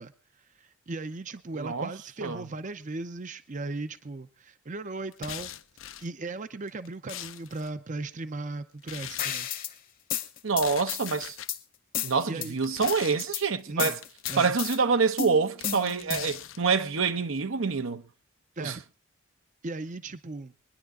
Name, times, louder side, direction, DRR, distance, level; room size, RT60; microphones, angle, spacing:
voice 1, 0.0-5.5 6.0-9.5 12.3-12.6 13.7-14.0 14.3-14.5 18.6-18.8 19.6-20.5, right 2 dB, 35° right, 0.6 m, -37 dB
voice 2, 1.6-1.9 2.2-2.4 10.4-11.4 12.0-14.0 14.4-18.0 18.6-18.7, right 5 dB, 70° right, 0.8 m, -26 dB
sound 1, 5.1-6.1 6.7-7.7 8.8-9.5 10.5-11.5 12.5-13.3 14.0-14.8 15.6-16.6, left 11 dB, 70° left, 0.7 m, -41 dB
sound 2, 9.2-9.7 10.1-11.6 11.9-12.5 12.9-13.4 13.8-14.8 15.2-16.4, left 8 dB, 40° left, 1.0 m, -33 dB
24.5 x 10.5 x 3.7 m
head